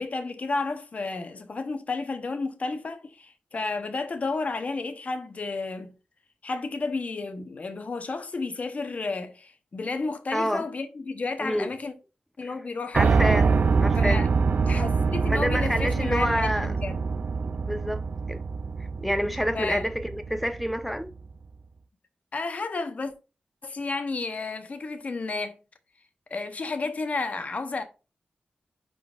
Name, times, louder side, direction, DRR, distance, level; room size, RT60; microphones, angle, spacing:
voice 1, 0.0-5.9 6.4-11.9 12.4-13.1 14.0-14.3 14.7-17.0 19.5-19.8 22.3-23.1 23.6-25.6 26.3-27.8, left 3 dB, 55° left, 0.9 m, -32 dB
voice 2, 10.3-10.6 11.4-11.7 12.9-13.5 13.8-14.2 15.2-16.7 17.7-18.0 18.3-18.4 19.0-21.1, equal, ahead, 0.5 m, -27 dB
Piano, 12.9-21.0, right 5 dB, 60° right, 0.3 m, -25 dB
10.0 x 3.8 x 2.4 m
wide cardioid pair, 75°, 3 cm